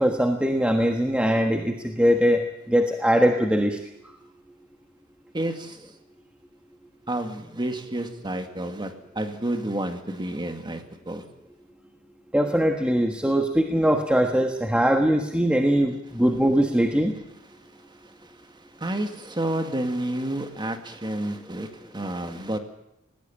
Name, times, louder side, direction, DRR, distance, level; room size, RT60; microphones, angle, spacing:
voice 1, 0.0-3.8 12.3-17.1, equal, 5° right, 3 dB, 1.4 m, -21 dB
voice 2, 5.3-5.8 7.1-11.2 17.9-22.6, right 1 dB, 20° right, 6 dB, 2.1 m, -30 dB
20.5 x 17.0 x 8.7 m, 0.82 s
head